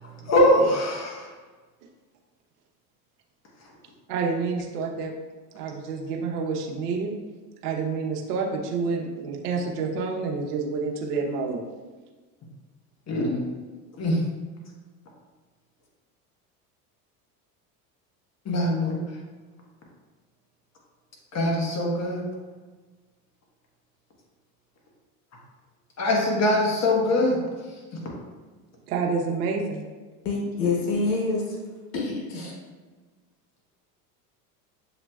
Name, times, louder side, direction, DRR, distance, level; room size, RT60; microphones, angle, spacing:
voice 1, 0.2-1.3 13.1-13.4 14.0-14.2 18.4-19.0 21.3-22.3 26.0-27.4, left 1 dB, 35° left, -2 dB, 1.3 m, -22 dB
voice 2, 4.1-5.1 5.5-7.1 7.6-11.7 28.9-29.8, right 4 dB, 80° right, 1 dB, 0.9 m, -28 dB
voice 3, 30.2-31.6 31.9-32.5, left 3 dB, 80° left, -2 dB, 1.3 m, -26 dB
7.1 x 3.0 x 2.3 m, 1.3 s
hypercardioid pair, 95°, 47 cm